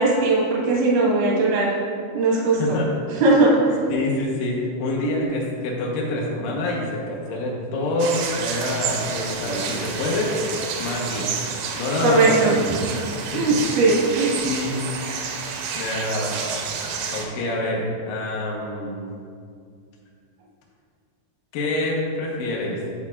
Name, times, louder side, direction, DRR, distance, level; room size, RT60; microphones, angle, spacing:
voice 1, 0.0-1.7 2.1-2.6 3.2-3.8 12.0-12.8 13.3-14.3, right 2 dB, 60° right, -4 dB, 2.4 m, -19 dB
voice 2, 2.4-2.9 3.9-10.4 10.8-11.3 11.8-12.6 13.3-13.6 14.4-14.8 15.7-16.4 17.1-19.1 21.5-22.8, left 2 dB, 75° left, -3 dB, 2.1 m, -26 dB
sound 1, 8.0-17.3, right 6 dB, 85° right, 3.1 m, -30 dB
9.6 x 6.4 x 2.4 m, 2.3 s
omnidirectional pair, 5.5 m